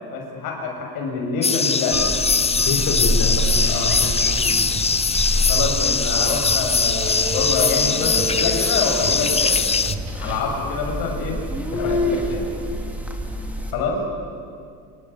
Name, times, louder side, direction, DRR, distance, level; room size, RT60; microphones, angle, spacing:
voice 1, 0.1-2.0 2.7-2.8 3.7-4.0 5.5-9.6 10.1-11.4 11.8-12.4 13.7-14.0, left 4 dB, 80° left, 2 dB, 6.8 m, -26 dB
sound 1, 1.4-9.9, left 5 dB, 15° left, 0.8 m, -21 dB
sound 2, 1.9-13.7, equal, 5° right, 3.1 m, -27 dB
voice 2, 2.5-4.6 11.7-11.9, left 3 dB, 55° left, 0 dB, 4.8 m, -27 dB
sound 3, 3.4-10.4, right 4 dB, 50° right, 3.7 m, -35 dB
26.5 x 22.5 x 9.8 m, 2.2 s
cardioid pair, 140°, 36 cm